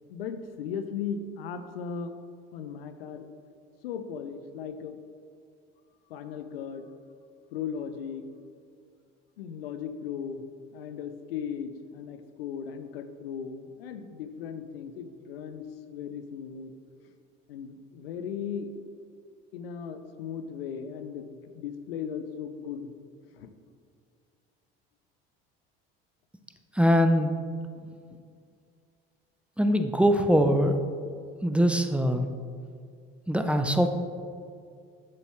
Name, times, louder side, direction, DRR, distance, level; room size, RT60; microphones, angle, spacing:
voice 1, 0.1-2.1 2.5-3.3 3.8-5.0 6.1-6.9 7.5-8.2 9.4-10.4 10.7-16.7 17.5-18.7 19.5-22.9 23.3-23.5, left 7 dB, 90° left, 9 dB, 0.6 m, -37 dB
voice 2, 26.8-27.3 29.6-30.8 31.4-32.2 33.3-33.9, equal, 5° right, 6 dB, 0.6 m, -22 dB
7.7 x 7.0 x 3.1 m, 2.2 s
hypercardioid pair, 65°, 29 cm